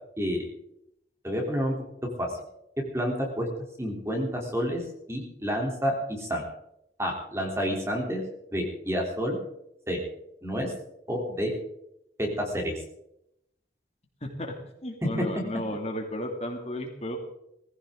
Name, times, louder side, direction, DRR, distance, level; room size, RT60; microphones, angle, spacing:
voice 1, 1.2-1.8 2.2-2.3 2.9-3.5 3.8-4.8 5.1-6.4 7.0-8.2 8.5-9.4 9.9-10.0 10.4-10.7 11.1-11.5 12.2-12.7, equal, 15° right, 0 dB, 3.5 m, -29 dB
voice 2, 14.2-14.5 14.8-17.2, left 1 dB, 35° left, 2 dB, 2.6 m, -34 dB
19.5 x 15.5 x 3.9 m, 0.79 s
head